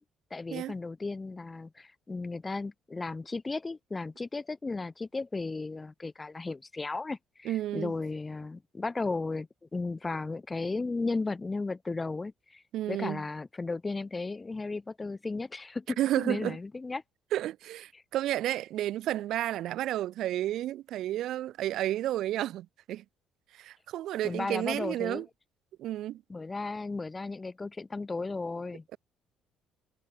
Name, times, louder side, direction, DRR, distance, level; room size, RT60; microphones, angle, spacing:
voice 1, 0.3-12.6 12.9-17.0 24.2-25.2 26.3-28.8, left 3 dB, 20° left, 0.4 m, -35 dB
voice 2, 7.4-7.9 12.7-13.2 16.0-16.6 17.3-23.0 23.5-25.3 25.8-26.2, right 13 dB, 70° right, 0.4 m, -31 dB
cardioid pair, 95°, 0 cm